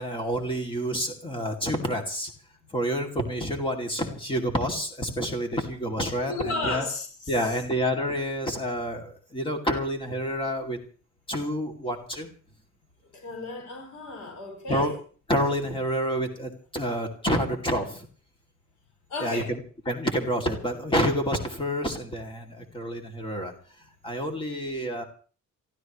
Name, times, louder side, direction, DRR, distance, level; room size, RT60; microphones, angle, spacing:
voice 1, 0.0-2.3 2.7-6.9 7.3-10.8 11.3-12.3 14.7-14.9 15.3-18.1 19.2-19.6 19.9-23.5 24.0-25.0, equal, 15° left, 3 dB, 2.5 m, -28 dB
voice 2, 6.3-7.6 13.1-14.9 19.1-19.5 22.6-22.7, left 3 dB, 80° left, 2 dB, 6.4 m, -34 dB
27.0 x 15.0 x 3.1 m, 0.40 s
wide cardioid pair, 170°, 29 cm